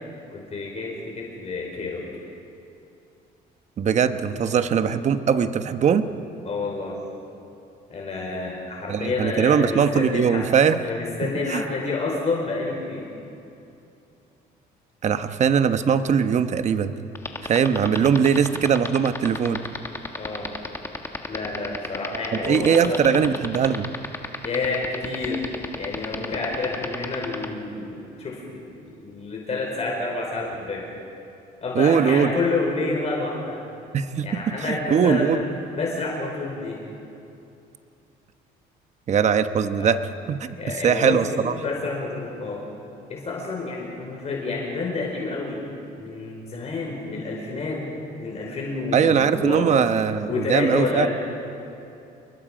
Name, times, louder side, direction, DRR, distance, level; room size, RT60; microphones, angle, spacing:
voice 1, 0.3-2.0 6.4-7.0 7.9-10.5 10.8-13.1 20.2-20.5 21.3-23.0 24.4-25.4 25.8-30.9 31.6-33.6 34.2-35.4 35.7-36.8 39.8-39.9 40.6-41.2 41.5-42.6 43.1-45.6 46.0-47.8 48.2-49.7 50.3-51.1, left 3 dB, 40° left, -1 dB, 4.8 m, -29 dB
voice 2, 3.8-6.1 8.9-10.8 11.2-11.6 15.0-16.9 17.4-19.6 22.4-23.9 31.7-32.3 33.9-35.4 39.1-40.0 40.3-41.5 48.9-51.1, right 7 dB, 45° right, 10 dB, 1.1 m, -21 dB
sound 1, 17.1-27.5, left 2 dB, 15° left, 1.5 m, -30 dB
28.5 x 22.0 x 5.1 m, 2.7 s
cardioid pair, 110°, 17 cm